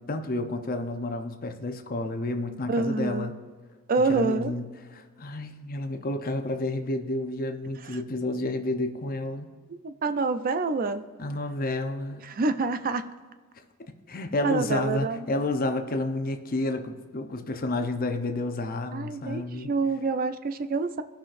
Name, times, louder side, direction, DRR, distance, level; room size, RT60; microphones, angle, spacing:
voice 1, 0.1-3.4 4.0-4.7 4.9-9.5 11.2-12.2 14.1-19.7, left 2 dB, 40° left, 6 dB, 0.7 m, -30 dB
voice 2, 2.7-3.3 3.9-4.5 9.7-11.0 12.2-13.1 14.4-15.3 18.9-21.0, right 3 dB, 40° right, 11 dB, 0.4 m, -27 dB
17.0 x 5.8 x 2.6 m, 1.5 s
head